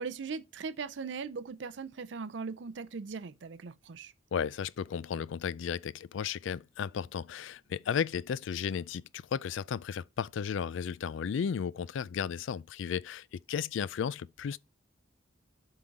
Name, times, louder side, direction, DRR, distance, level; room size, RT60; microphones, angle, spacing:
voice 1, 0.0-4.1, right 5 dB, 65° right, 0.5 m, -39 dB
voice 2, 4.3-14.6, left 7 dB, 70° left, 0.3 m, -34 dB
7.7 x 3.8 x 4.6 m
head